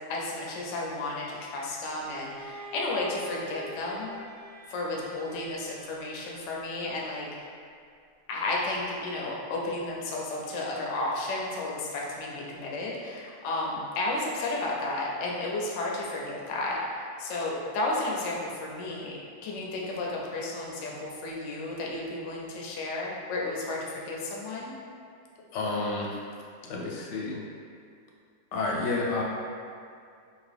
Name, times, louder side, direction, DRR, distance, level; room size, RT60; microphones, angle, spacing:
voice 1, 0.1-4.2 4.7-7.5 8.3-24.7, left 2 dB, 70° left, -3 dB, 0.7 m, -33 dB
Bowed string instrument, 2.0-6.8, equal, 75° right, 0.6 m, -45 dB
voice 2, 25.5-26.2 26.6-27.4 28.5-29.2, left 3 dB, 85° left, -2 dB, 1.2 m, -30 dB
2.8 x 2.4 x 3.3 m, 2.3 s
omnidirectional pair, 1.8 m